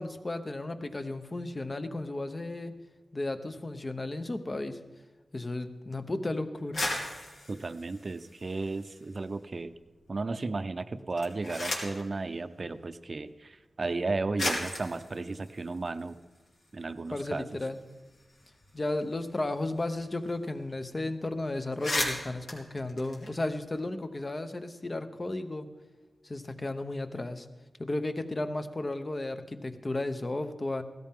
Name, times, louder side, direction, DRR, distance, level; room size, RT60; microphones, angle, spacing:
voice 1, 0.0-2.7 3.1-4.8 5.3-6.8 17.1-17.8 18.7-25.7 26.2-27.5 27.8-30.8, left 2 dB, 35° left, 8 dB, 1.0 m, -34 dB
sound 1, 6.6-9.1 9.5-10.2 11.0-12.1 13.1-13.2 13.9-14.0 14.4-16.7 17.0-17.1 17.4-20.0 20.3-20.4 20.7-20.9 21.3-21.4 21.6-23.8, left 1 dB, 80° left, 2.8 m, -36 dB
voice 2, 7.5-9.7 10.1-16.2 16.7-17.6, right 3 dB, 50° right, 11 dB, 0.7 m, -34 dB
16.0 x 13.5 x 3.7 m, 1.2 s
cardioid pair, 60°, 0 cm